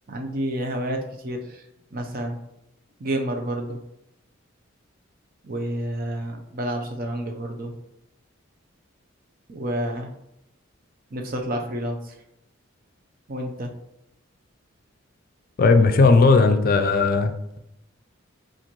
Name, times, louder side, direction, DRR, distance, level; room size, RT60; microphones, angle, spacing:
voice 1, 0.1-2.4 3.0-3.8 5.4-7.8 9.5-10.1 11.1-12.1 13.3-13.7, right 1 dB, 45° right, 4 dB, 0.6 m, -29 dB
voice 2, 15.6-17.3, left 4 dB, 45° left, 8 dB, 0.4 m, -16 dB
7.2 x 2.5 x 2.9 m, 0.84 s
head